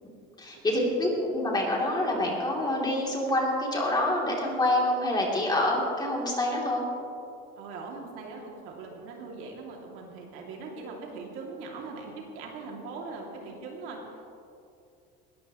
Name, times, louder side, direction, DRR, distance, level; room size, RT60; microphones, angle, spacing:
voice 1, 0.4-6.8, left 1 dB, 20° left, -2 dB, 3.3 m, -26 dB
voice 2, 7.6-14.0, right 4 dB, 80° right, -1 dB, 2.8 m, -41 dB
20.0 x 13.5 x 3.2 m, 2.6 s
cardioid pair, 125°, 21 cm